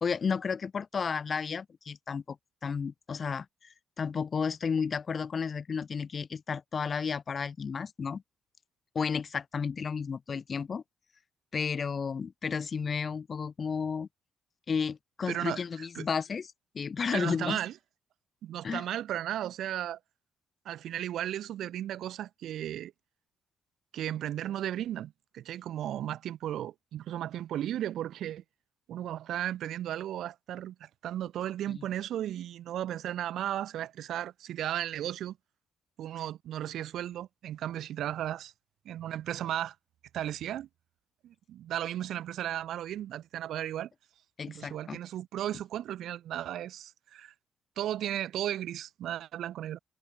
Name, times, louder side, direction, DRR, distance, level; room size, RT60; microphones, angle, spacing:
voice 1, 0.0-2.4 2.6-3.5 4.0-8.2 8.9-10.8 11.5-14.1 14.7-17.6 18.6-18.8 31.7-31.8 44.4-45.0, left 6 dB, 45° left, 0.9 m, -32 dB
voice 2, 15.3-16.1 17.1-17.7 18.4-20.0 20.6-22.9 23.9-28.4 28.9-35.4 36.0-38.5 38.8-39.7 40.1-40.7 41.2-43.9 44.5-47.3 47.8-49.8, right 12 dB, 75° right, 1.2 m, -35 dB
cardioid pair, 90°, 0 cm